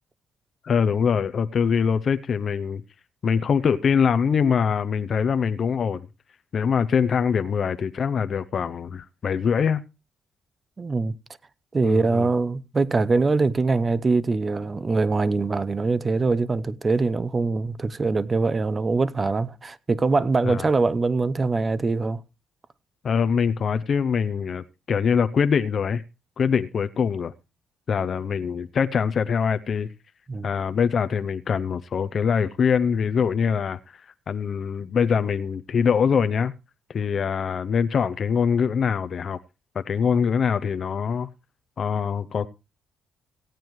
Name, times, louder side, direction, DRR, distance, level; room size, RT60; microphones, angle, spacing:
voice 1, 0.6-2.8 3.2-6.0 6.5-9.8 11.8-12.3 20.4-20.7 23.0-26.0 26.4-27.3 27.9-29.9 30.4-36.5 36.9-39.4 39.7-41.3 41.8-42.5, left 6 dB, 50° left, 0.6 m, -23 dB
voice 2, 10.8-11.1 11.7-22.2 30.3-30.5, right 3 dB, 30° right, 0.7 m, -23 dB
17.0 x 9.0 x 3.1 m
cardioid pair, 90°, 0 cm